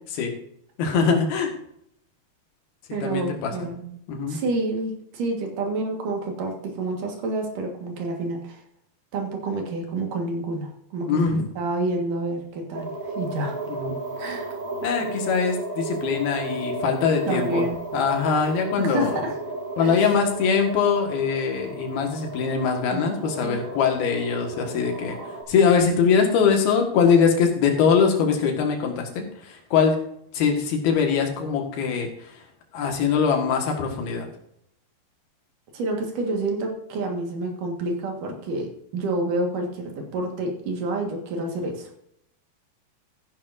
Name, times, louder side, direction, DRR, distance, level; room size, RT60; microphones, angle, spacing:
voice 1, 0.8-1.5 3.0-3.5 4.1-4.4 11.1-11.5 13.7-13.9 14.8-19.3 19.8-25.2 25.5-30.0 30.3-32.4 32.7-34.3, left 6 dB, 75° left, 3 dB, 3.5 m, -22 dB
voice 2, 2.9-4.0 4.3-8.6 9.1-13.6 14.2-14.5 15.0-15.1 17.3-17.8 18.8-19.4 19.8-20.0 22.9-23.6 35.7-41.9, right 2 dB, 60° right, 2 dB, 3.0 m, -29 dB
sound 1, 12.7-25.4, right 2 dB, 35° right, 2.3 m, -34 dB
14.5 x 10.5 x 2.6 m, 0.72 s
omnidirectional pair, 4.5 m